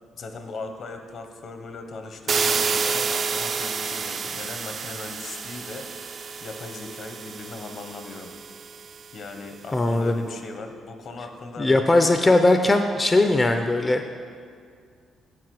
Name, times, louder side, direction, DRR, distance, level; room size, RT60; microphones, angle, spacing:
voice 1, 0.1-5.9 6.4-8.3 9.1-11.7, left 3 dB, 60° left, 5 dB, 0.8 m, -38 dB
sound 1, 2.3-9.1, right 5 dB, 50° right, 0.3 m, -29 dB
voice 2, 9.7-10.2 11.6-14.1, left 2 dB, 20° left, 5 dB, 0.4 m, -19 dB
7.5 x 4.8 x 5.9 m, 2.2 s
cardioid pair, 90°, 0 cm